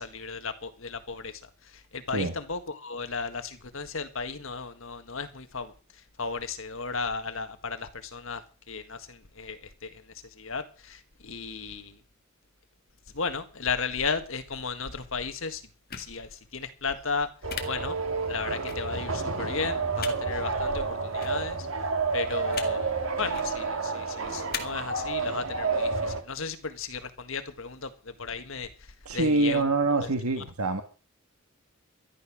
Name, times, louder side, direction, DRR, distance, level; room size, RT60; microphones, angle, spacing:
voice 1, 0.0-5.7 6.2-8.4 8.7-10.0 10.4-12.0 13.1-15.6 16.0-17.3 17.7-18.0 18.3-21.7 22.1-28.7 29.1-29.6 29.9-30.4, left 5 dB, 65° left, 1.7 m, -35 dB
sound 1, 15.9-16.1 17.5-17.6 18.7-18.8 20.0-20.1 21.2-21.3 22.5-22.7 23.2-23.5 24.5-24.6, left 8 dB, 45° left, 1.9 m, -35 dB
sound 2, 17.4-26.2, right 4 dB, 65° right, 1.8 m, -30 dB
voice 2, 29.0-30.8, right 3 dB, 85° right, 1.5 m, -25 dB
14.0 x 11.5 x 6.1 m
head